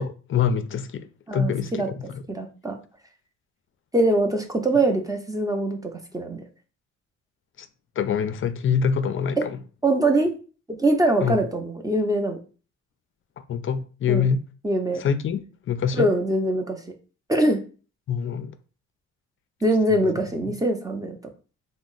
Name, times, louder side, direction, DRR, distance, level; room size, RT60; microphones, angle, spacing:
voice 1, 0.0-2.2 7.6-7.7 8.0-9.6 11.2-11.4 13.4-14.4 14.9-16.1 18.1-18.5 20.4-20.5, left 7 dB, 45° left, 0.4 m, -25 dB
voice 2, 1.3-1.9 2.3-2.8 3.9-6.4 9.4-9.5 9.8-10.3 10.8-12.4 14.1-14.3 14.6-15.0 15.9-16.8 17.3-17.6 19.6-21.2, right 1 dB, 10° right, 0.5 m, -23 dB
2.9 x 2.1 x 3.8 m
cardioid pair, 90°, 30 cm